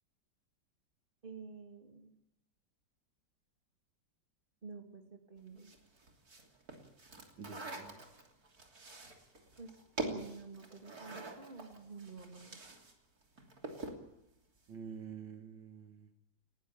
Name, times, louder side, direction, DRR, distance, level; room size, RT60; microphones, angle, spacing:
voice 1, 1.2-2.1 4.6-5.8 9.6-9.7 10.0-12.6, right 4 dB, 25° right, 4 dB, 2.9 m, -49 dB
sound 1, 5.6-12.9 13.2-14.1, right 2 dB, 50° right, 3.6 m, -45 dB
voice 2, 7.4-8.0 14.7-16.1, right 6 dB, 85° right, 6 dB, 2.6 m, -48 dB
20.0 x 19.0 x 9.1 m, 0.84 s
omnidirectional pair, 2.0 m